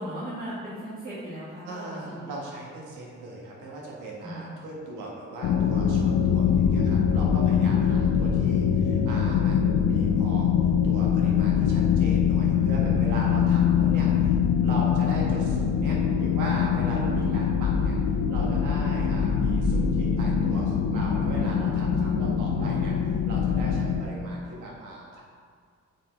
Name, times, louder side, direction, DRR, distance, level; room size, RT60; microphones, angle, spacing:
voice 1, 0.0-2.4 4.2-4.6 7.4-8.3 17.0-17.4 21.8-22.8, right 1 dB, 30° right, -8 dB, 1.6 m, -37 dB
voice 2, 1.6-10.5 10.8-18.0 18.3-22.9 23.3-25.2, right 1 dB, 90° right, -3 dB, 1.5 m, -39 dB
sound 1, 5.4-24.0, left 7 dB, 75° left, 0.6 m, -23 dB
8.3 x 4.3 x 3.4 m, 2.1 s
cardioid pair, 90°, 30 cm